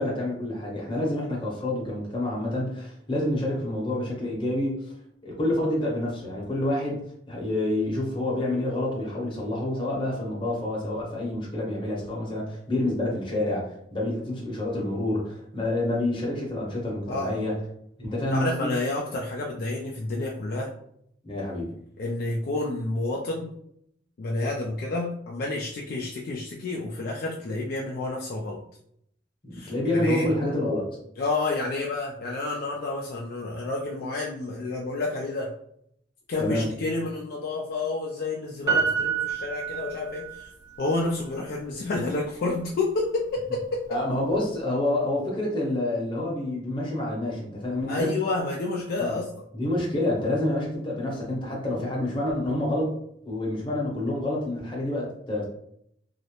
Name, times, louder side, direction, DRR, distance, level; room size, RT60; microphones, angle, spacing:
voice 1, 0.0-4.8 5.2-17.6 18.0-18.7 21.2-21.8 29.4-30.9 36.4-36.7 43.9-48.1 49.0-49.1 49.5-52.9 53.2-55.4, left 1 dB, 25° left, -3 dB, 0.8 m, -28 dB
voice 2, 17.1-17.4 18.2-20.7 22.0-23.5 24.2-28.6 29.5-30.3 31.2-35.5 36.3-40.5 40.8-44.0 47.9-49.3, left 2 dB, 55° left, -2 dB, 0.3 m, -29 dB
Piano, 38.7-40.5 40.8-40.9, right 6 dB, 20° right, 0.8 m, -27 dB
2.4 x 2.0 x 2.8 m, 0.70 s
head